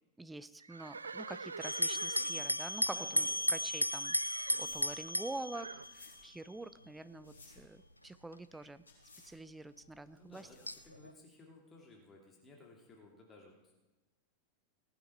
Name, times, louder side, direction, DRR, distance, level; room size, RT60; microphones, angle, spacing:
voice 1, 0.2-8.8 9.2-10.5, right 2 dB, 5° right, 14 dB, 0.5 m, -46 dB
Livestock farm animals working animals, 0.6-3.7 4.0-4.7 5.5-5.9, right 4 dB, 75° right, 0.3 m, -46 dB
sound 1, 1.6-6.3 7.2-7.6 8.3-8.4 10.7-11.1, left 1 dB, 90° left, 0.4 m, -35 dB
sound 2, 2.6-11.0, left 3 dB, 70° left, 5.2 m, -61 dB
voice 2, 2.9-3.6 4.5-4.8 10.1-13.8, left 2 dB, 20° left, 0 dB, 2.7 m, -57 dB
18.5 x 9.4 x 4.6 m, 1.1 s
figure-of-eight pair, 90°, 0 cm